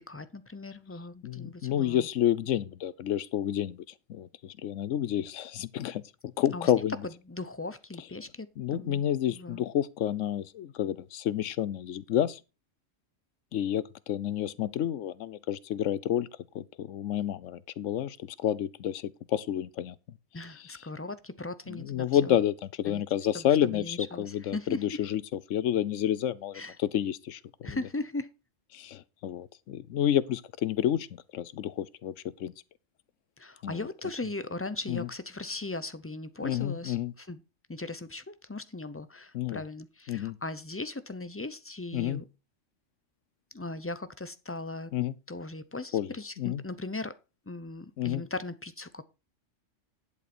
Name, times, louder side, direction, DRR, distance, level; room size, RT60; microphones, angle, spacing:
voice 1, 0.0-2.1 6.5-9.0 9.3-9.6 20.3-22.4 22.9-23.0 23.3-25.0 26.5-26.8 27.6-28.3 33.4-37.4 37.7-42.2 43.5-44.9 45.3-47.2 47.5-49.1, left 2 dB, 20° left, 0.4 m, -38 dB
voice 2, 1.2-3.8 4.1-6.0 6.4-6.9 8.6-12.4 13.5-16.3 16.5-20.0 21.7-27.8 28.7-32.1 32.4-32.5 33.6-33.8 34.9-35.1 36.4-37.1 39.3-39.6 40.1-40.4 41.9-42.2 44.9-45.1 45.9-46.1 46.4-46.6 48.0-48.2, left 11 dB, 80° left, 1.0 m, -29 dB
11.0 x 6.7 x 4.3 m
omnidirectional pair, 1.3 m